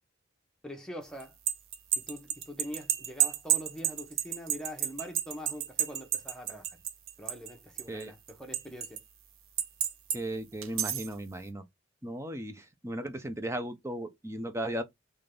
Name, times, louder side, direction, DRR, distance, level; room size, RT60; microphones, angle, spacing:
voice 1, 0.6-1.3 1.9-6.8 7.2-9.0, equal, 5° left, 1.1 m, -43 dB
sound 1, 1.2-7.5 7.8-9.0 9.6-10.2 10.6-11.1, right 11 dB, 90° right, 0.8 m, -30 dB
voice 2, 10.1-11.6 12.0-14.8, right 1 dB, 15° right, 0.6 m, -36 dB
3.7 x 3.3 x 3.8 m
head